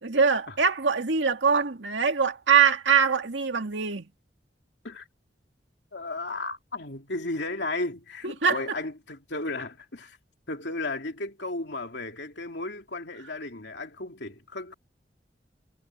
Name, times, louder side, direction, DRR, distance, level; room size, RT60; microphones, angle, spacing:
voice 1, 0.0-4.1 8.2-8.6, right 6 dB, 85° right, 2.2 m, -23 dB
voice 2, 5.9-10.2 10.5-14.7, left 2 dB, 70° left, 3.3 m, -34 dB
head